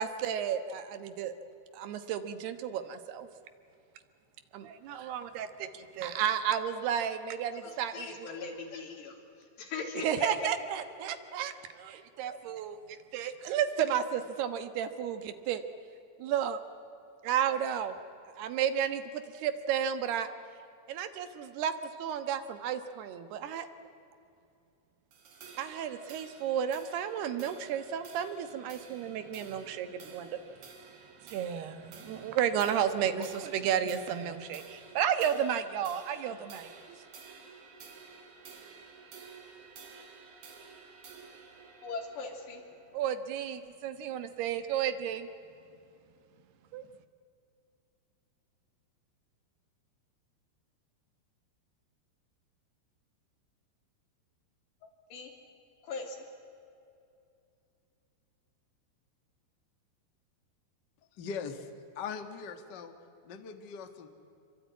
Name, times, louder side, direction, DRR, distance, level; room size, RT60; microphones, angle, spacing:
voice 1, 0.0-1.3 1.7-3.3 4.5-8.3 10.0-15.6 16.2-16.6 17.2-18.0 18.4-20.3 20.9-21.7 22.0-23.7 25.6-30.4 31.2-37.0 42.9-45.3 46.7-46.9, right 9 dB, 75° right, 10 dB, 3.3 m, -32 dB
voice 2, 7.6-9.2 9.6-10.3 41.8-42.6 55.1-55.3 55.8-56.2, left 4 dB, 85° left, 2 dB, 5.5 m, -39 dB
sound 1, 25.1-43.7, right 5 dB, 50° right, 3.7 m, -52 dB
voice 3, 61.1-61.7 61.9-62.9 63.2-64.1, left 6 dB, 50° left, 7 dB, 1.2 m, -40 dB
26.0 x 24.0 x 9.5 m, 2.6 s
omnidirectional pair, 4.8 m